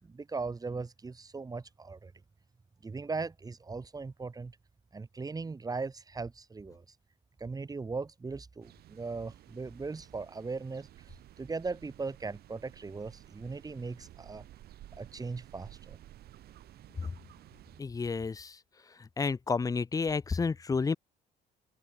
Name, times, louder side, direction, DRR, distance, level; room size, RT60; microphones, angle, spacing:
voice 1, 0.0-2.1 2.8-4.6 4.9-6.9 7.4-10.9 11.4-14.5 15.0-16.0, right 4 dB, 20° right, 3.5 m, -38 dB
sound 1, 8.6-17.8, right 13 dB, 70° right, 4.3 m, -54 dB
voice 2, 17.8-18.5 19.2-20.9, left 4 dB, 20° left, 0.8 m, -30 dB
open air
cardioid pair, 110°, 17 cm